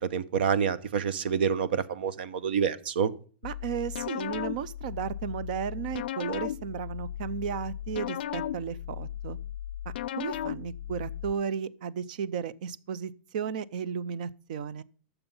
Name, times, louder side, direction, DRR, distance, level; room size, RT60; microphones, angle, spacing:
voice 1, 0.0-3.1, right 7 dB, 65° right, 0.9 m, -27 dB
sound 1, 3.4-11.3, left 11 dB, 60° left, 0.4 m, -36 dB
voice 2, 3.4-9.4 10.2-14.8, right 7 dB, 50° right, 0.6 m, -34 dB
13.5 x 7.0 x 5.4 m
supercardioid pair, 180°, 6 cm